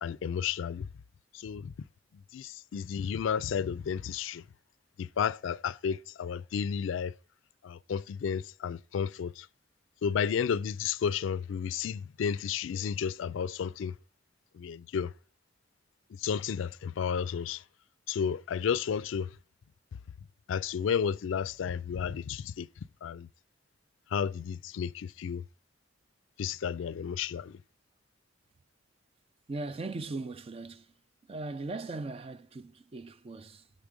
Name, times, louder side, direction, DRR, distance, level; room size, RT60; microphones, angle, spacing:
voice 1, 0.0-0.9 1.3-1.7 2.3-4.4 5.0-7.1 7.6-9.5 10.0-13.9 14.5-15.1 16.2-17.6 18.1-19.3 20.5-22.7 23.0-23.3 24.1-25.4 26.4-27.6, left 7 dB, 75° left, 0.3 m, -32 dB
voice 2, 29.5-30.9 31.2-33.7, right 3 dB, 30° right, 0.4 m, -39 dB
6.6 x 5.2 x 4.8 m
head